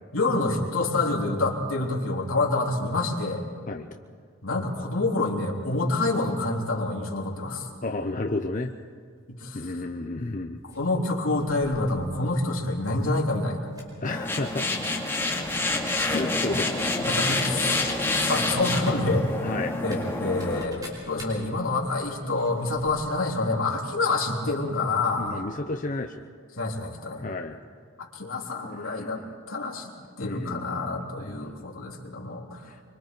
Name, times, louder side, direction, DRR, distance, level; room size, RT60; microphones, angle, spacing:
voice 1, 0.1-3.4 4.4-7.7 9.3-9.6 10.7-13.6 17.1-17.8 18.3-19.2 19.8-25.4 26.6-27.2 28.0-29.2 29.5-29.9 30.2-32.6, left 2 dB, 80° left, -2 dB, 3.4 m, -27 dB
voice 2, 7.8-8.7 9.5-10.6 14.0-14.8 16.0-16.9 19.4-19.8 25.2-26.2 27.2-27.6 28.8-29.1 30.2-31.4 32.7-32.8, left 2 dB, 40° left, 4 dB, 0.7 m, -32 dB
sound 1, 10.7-12.3 12.8-13.1 13.4-14.2 14.8-14.9 15.2-16.1 16.4-16.5 17.2-23.3 23.6-23.7, equal, 20° right, 5.0 m, -47 dB
sound 2, 14.0-20.6, left 2 dB, 10° left, 2.4 m, -27 dB
25.0 x 24.5 x 4.6 m, 2.1 s
head